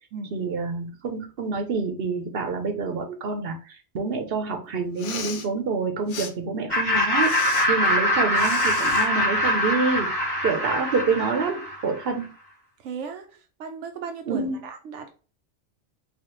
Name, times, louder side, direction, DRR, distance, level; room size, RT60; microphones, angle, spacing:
voice 1, 0.3-10.1 10.4-12.3 14.3-14.6, right 4 dB, 60° right, 5 dB, 0.9 m, -27 dB
Respiratory sounds, 4.9-5.5 6.1-6.3 7.2-7.7 8.3-9.1, left 6 dB, 90° left, 1.0 m, -35 dB
Laughter, 6.7-12.0, left 1 dB, 20° left, 1.2 m, -23 dB
voice 2, 12.8-15.1, right 5 dB, 85° right, 5 dB, 0.9 m, -36 dB
4.1 x 2.4 x 3.0 m, 0.35 s
omnidirectional pair, 1.2 m